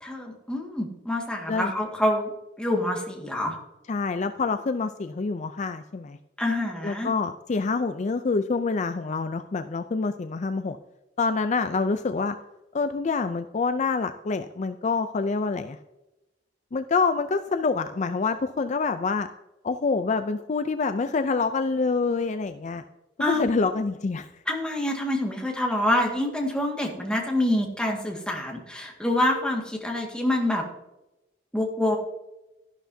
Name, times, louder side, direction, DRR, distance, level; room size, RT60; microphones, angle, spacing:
voice 1, 0.0-2.3 2.6-3.6 6.4-7.1 23.2-23.5 24.5-30.6 31.5-32.0, left 1 dB, 5° left, 0 dB, 1.8 m, -26 dB
voice 2, 3.9-6.2 6.8-10.8 11.2-12.4 12.7-15.8 16.7-19.3 19.6-22.8 23.2-24.3, left 4 dB, 40° left, 9 dB, 0.4 m, -26 dB
12.5 x 11.5 x 2.7 m, 0.97 s
head